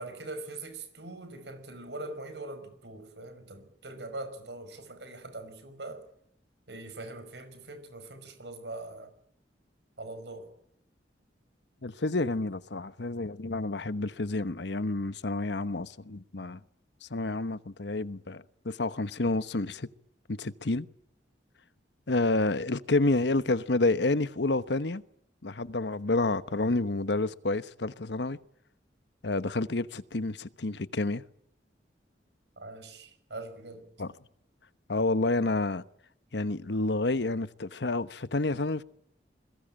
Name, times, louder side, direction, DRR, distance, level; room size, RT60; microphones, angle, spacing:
voice 1, 0.0-6.1 6.7-9.1 10.0-10.5 32.6-33.9, right 2 dB, 80° right, 5.3 m, -42 dB
voice 2, 11.8-16.6 17.0-19.9 20.3-20.9 22.1-25.0 25.4-28.4 29.2-31.2 34.0-34.1 34.9-35.8 36.3-38.8, left 2 dB, 80° left, 1.1 m, -29 dB
29.5 x 22.0 x 8.9 m
head